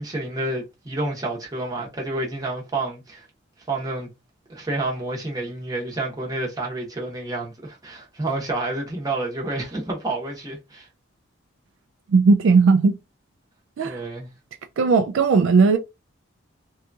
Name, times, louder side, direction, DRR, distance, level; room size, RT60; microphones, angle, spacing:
voice 1, 0.0-3.3 3.7-4.1 4.5-10.9 13.8-14.3, right 2 dB, 20° right, 0.8 m, -29 dB
voice 2, 12.1-13.0 13.8-14.0 14.8-15.8, right 4 dB, 65° right, 0.3 m, -17 dB
2.8 x 2.3 x 2.6 m
head